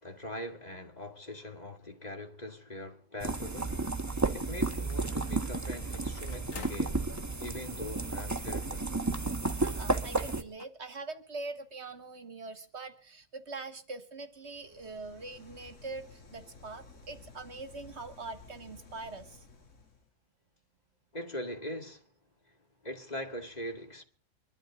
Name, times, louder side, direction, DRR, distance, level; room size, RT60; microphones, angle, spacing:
voice 1, 0.0-3.8 4.1-7.0 7.4-8.9 21.1-22.1 22.5-22.6 22.8-24.0, left 1 dB, 30° left, 2.4 m, -42 dB
sound 1, 3.2-10.4, right 3 dB, 15° right, 1.2 m, -32 dB
sound 2, 5.9-7.0 7.9-8.0 8.2-8.3 9.4-9.8 10.0-10.2 10.6-10.7, left 5 dB, 90° left, 1.7 m, -48 dB
voice 2, 9.5-19.5, right 3 dB, 60° right, 1.7 m, -43 dB
sound 3, 14.4-20.1, left 4 dB, 70° left, 2.6 m, -54 dB
24.5 x 12.5 x 3.7 m
omnidirectional pair, 1.3 m